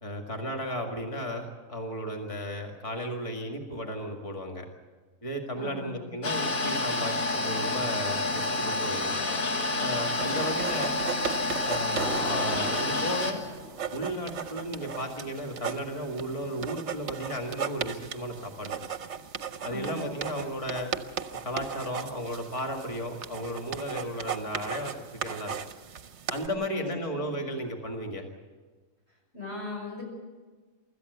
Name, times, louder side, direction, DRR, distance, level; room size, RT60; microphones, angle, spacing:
voice 1, 0.0-4.7 5.2-9.1 9.8-11.0 11.6-13.4 13.9-18.8 19.6-20.9 21.4-25.5 26.3-28.3, equal, 25° left, 2 dB, 2.1 m, -34 dB
voice 2, 5.5-6.1 10.2-10.5 19.6-20.1 26.6-27.3 29.3-30.0, left 2 dB, 55° left, -1 dB, 6.2 m, -39 dB
sound 1, 6.2-13.3, left 2 dB, 85° left, 2.1 m, -29 dB
sound 2, 10.1-26.5, right 7 dB, 60° right, 1.2 m, -37 dB
sound 3, 12.0-15.3, equal, ahead, 2.3 m, -39 dB
24.5 x 14.0 x 8.0 m, 1.4 s
omnidirectional pair, 1.4 m